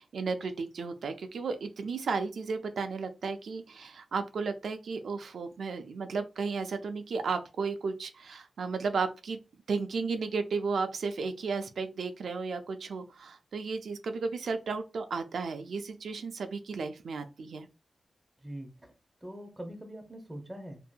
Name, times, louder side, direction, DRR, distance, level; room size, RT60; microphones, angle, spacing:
voice 1, 0.0-9.4 9.7-17.7, right 4 dB, 85° right, 0.3 m, -34 dB
voice 2, 18.4-18.9 19.2-20.8, right 1 dB, 15° right, 0.7 m, -43 dB
2.7 x 2.6 x 2.2 m
wide cardioid pair, 135°, 0 cm